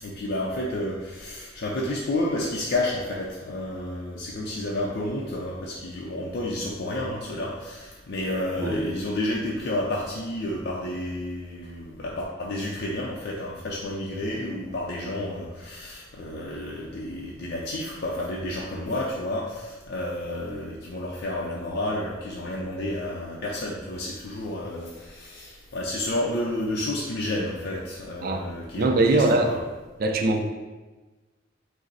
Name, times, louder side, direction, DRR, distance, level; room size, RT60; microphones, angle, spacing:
voice 1, 0.0-29.6, left 1 dB, 55° left, -3 dB, 0.5 m, -30 dB
voice 2, 28.8-29.5 30.0-30.5, right 2 dB, 50° right, 4 dB, 0.4 m, -21 dB
5.1 x 2.0 x 4.0 m, 1.3 s
head